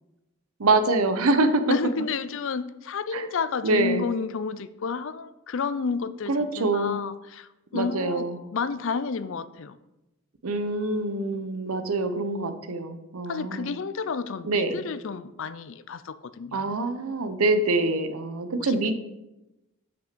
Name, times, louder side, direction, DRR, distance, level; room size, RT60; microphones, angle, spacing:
voice 1, 0.6-1.6 3.1-3.3 3.6-4.0 6.3-7.0 7.7-8.4 10.4-13.7 14.4-14.8 16.5-18.9, right 2 dB, 85° right, 9 dB, 0.8 m, -25 dB
voice 2, 1.7-9.8 13.3-16.8 18.6-18.9, left 5 dB, 60° left, 14 dB, 0.4 m, -31 dB
6.2 x 6.0 x 6.7 m, 0.98 s
head